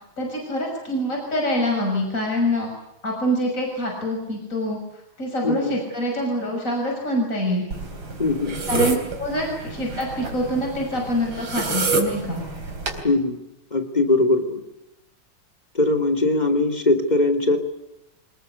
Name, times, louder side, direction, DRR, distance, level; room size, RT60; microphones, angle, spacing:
voice 1, 0.2-2.7 3.0-4.8 5.2-7.7 8.7-12.4, equal, 35° left, 1 dB, 6.8 m, -25 dB
voice 2, 5.4-5.8 8.2-8.6 13.0-13.4 13.7-14.6 15.7-17.6, left 2 dB, 20° left, 5 dB, 3.0 m, -20 dB
sound 1, 7.7-13.0, right 3 dB, 70° right, 4.6 m, -28 dB
26.5 x 21.0 x 8.2 m, 0.91 s
omnidirectional pair, 2.3 m